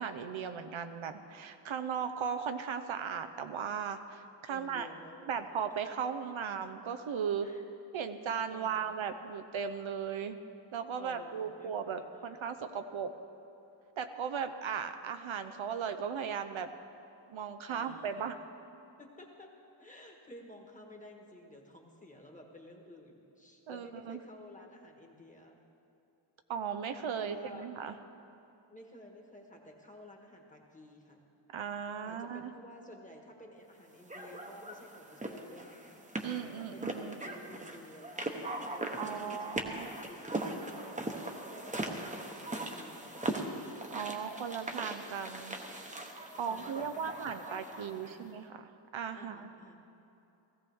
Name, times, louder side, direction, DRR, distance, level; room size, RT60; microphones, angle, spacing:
voice 1, 0.0-4.9 5.3-7.5 7.9-10.4 10.7-13.1 14.0-16.7 17.3-18.4 23.7-24.2 26.5-27.9 31.5-32.5 36.2-37.2 39.0-39.9 43.9-45.6 46.4-49.5, right 7 dB, 85° right, 8 dB, 0.8 m, -37 dB
voice 2, 4.5-5.5 6.2-6.3 7.4-7.8 8.5-9.1 10.9-12.3 17.7-18.4 19.0-19.5 19.8-25.6 27.1-27.7 28.7-31.2 32.0-43.5 46.3-48.3 49.1-49.8, left 1 dB, 15° left, 1 dB, 1.5 m, -53 dB
sound 1, 34.1-48.2, right 1 dB, 15° right, 1.0 m, -40 dB
17.0 x 15.0 x 3.5 m, 2.8 s
wide cardioid pair, 125°, 46 cm